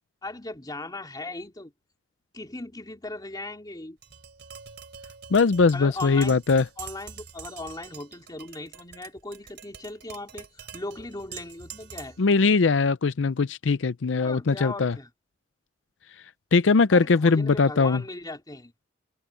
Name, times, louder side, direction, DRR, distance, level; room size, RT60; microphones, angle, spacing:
voice 1, 0.2-1.7 2.3-4.0 5.7-6.4 6.8-12.2 14.2-15.1 16.9-18.7, left 2 dB, 20° left, 2.8 m, -38 dB
Tap, 4.0-12.3, right 7 dB, 65° right, 3.9 m, -45 dB
voice 2, 5.3-6.6 12.2-14.9 16.5-18.0, left 4 dB, 75° left, 0.6 m, -21 dB
head